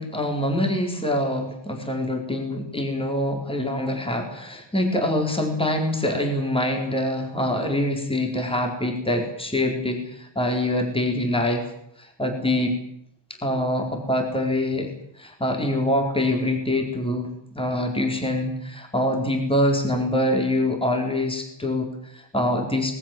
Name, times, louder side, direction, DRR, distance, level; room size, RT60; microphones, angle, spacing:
voice 1, 0.0-11.7 12.0-12.8 13.4-14.9 15.2-22.9, left 1 dB, 10° left, 3 dB, 4.4 m, -25 dB
25.5 x 20.5 x 7.6 m, 0.73 s
wide cardioid pair, 140°, 44 cm